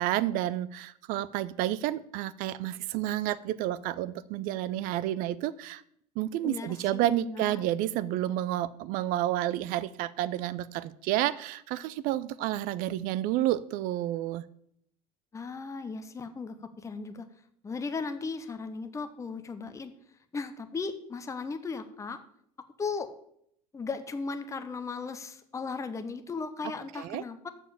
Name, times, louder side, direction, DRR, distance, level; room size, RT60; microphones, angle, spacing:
voice 1, 0.0-5.8 6.2-14.4 26.9-27.2, right 13 dB, 45° right, 18 dB, 0.5 m, -30 dB
voice 2, 6.4-7.7 15.3-17.2 17.6-19.9 20.3-22.2 22.8-23.1 23.7-27.5, left 4 dB, 15° left, 9 dB, 0.8 m, -36 dB
7.1 x 6.8 x 7.0 m, 0.69 s
figure-of-eight pair, 70°, 21 cm